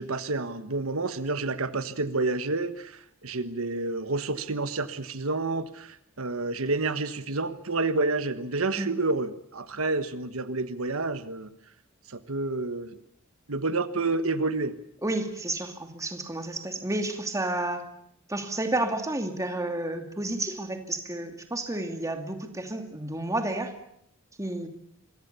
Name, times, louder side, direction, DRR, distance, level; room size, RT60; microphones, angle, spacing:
voice 1, 0.0-11.5 12.1-13.0 13.5-14.7, right 3 dB, 80° right, 11 dB, 1.3 m, -29 dB
voice 2, 15.0-17.8 18.3-23.7 24.4-24.7, right 2 dB, 15° right, 5 dB, 2.6 m, -31 dB
27.0 x 23.5 x 6.9 m, 0.72 s
head